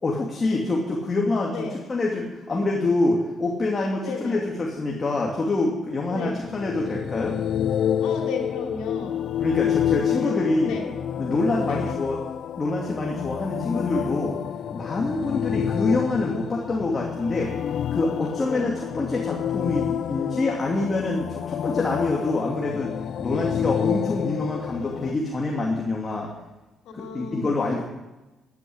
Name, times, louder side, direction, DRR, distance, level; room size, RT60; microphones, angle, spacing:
voice 1, 0.0-7.4 9.4-10.8 11.2-12.2 12.6-14.4 14.7-17.6 17.9-26.3 26.9-27.8, left 2 dB, 30° left, -1 dB, 2.7 m, -26 dB
voice 2, 4.0-4.4 6.1-6.4 8.0-9.2 10.2-10.4 10.6-10.8 11.7-11.9 18.4-18.7 26.8-27.5, left 4 dB, 90° left, 1 dB, 3.5 m, -33 dB
sound 1, 6.3-25.1, left 9 dB, 70° left, 0.4 m, -28 dB
14.5 x 9.7 x 8.8 m, 1.1 s
cardioid pair, 90°, 0 cm